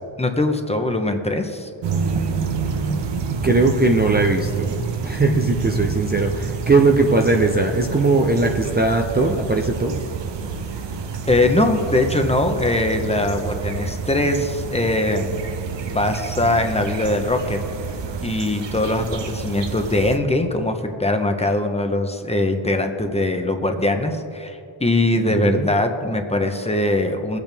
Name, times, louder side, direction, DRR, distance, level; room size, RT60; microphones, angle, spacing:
voice 1, 0.2-1.7 5.2-5.8 11.3-15.4 15.8-17.6 18.2-27.4, left 2 dB, 15° left, 5 dB, 1.0 m, -21 dB
sound 1, 1.8-20.2, right 5 dB, 60° right, 1.1 m, -28 dB
voice 2, 3.4-10.0 25.2-25.7, right 3 dB, 20° right, 3 dB, 0.7 m, -19 dB
21.5 x 8.3 x 3.5 m, 2.6 s
wide cardioid pair, 115°, 48 cm